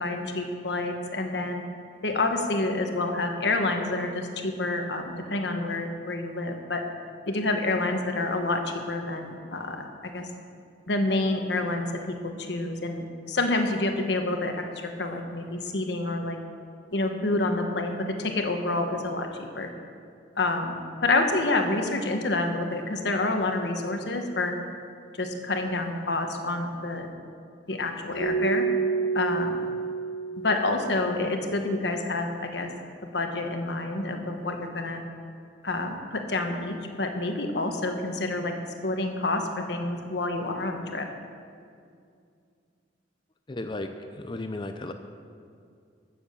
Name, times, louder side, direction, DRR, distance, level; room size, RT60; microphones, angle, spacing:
voice 1, 0.0-1.6 2.0-6.8 7.3-10.3 10.9-16.4 16.9-19.7 20.4-24.6 25.2-27.1 27.7-28.7 29.1-29.7 30.4-32.7 33.0-35.0 35.6-38.5 38.8-41.1, left 2 dB, 70° left, 4 dB, 1.3 m, -28 dB
Keyboard (musical), 28.1-31.0, right 5 dB, 45° left, 2.6 m, -28 dB
voice 2, 43.5-44.9, left 2 dB, 25° left, 7 dB, 0.5 m, -35 dB
14.0 x 7.1 x 7.0 m, 2.3 s
head